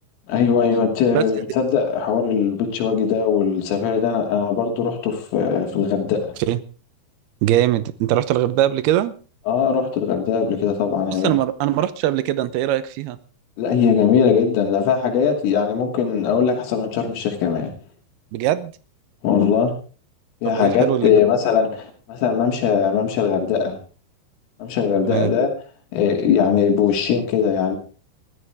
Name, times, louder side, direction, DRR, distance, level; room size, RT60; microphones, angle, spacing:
voice 1, 0.3-6.2 9.5-11.3 13.6-17.7 19.2-19.7 20.4-23.8 24.6-25.5 25.9-27.8, left 7 dB, 85° left, 3 dB, 5.3 m, -20 dB
voice 2, 7.4-9.1 11.1-13.2 18.3-18.7 20.5-21.1 25.1-25.3, right 13 dB, 80° right, 14 dB, 2.3 m, -21 dB
21.5 x 14.5 x 3.5 m, 0.37 s
omnidirectional pair, 5.6 m